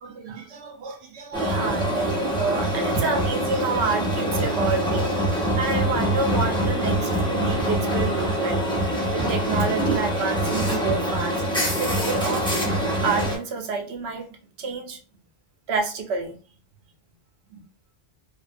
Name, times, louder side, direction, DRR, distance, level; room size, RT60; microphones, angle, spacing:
voice 1, 0.0-8.6 9.1-11.3 11.8-12.5 13.0-14.3 14.6-15.0 15.7-16.4 17.5-17.6, right 4 dB, 80° right, 3 dB, 0.9 m, -29 dB
sound 1, 1.3-13.4, right 1 dB, 5° left, 0.5 m, -24 dB
sound 2, 1.6-1.8 2.9-3.1 4.4-4.6 5.9-6.1 7.6-7.7 9.2-9.4 10.9-11.0 12.1-12.3 13.2-13.4, right 4 dB, 15° right, 1.1 m, -33 dB
2.4 x 2.1 x 2.5 m, 0.38 s
omnidirectional pair, 1.1 m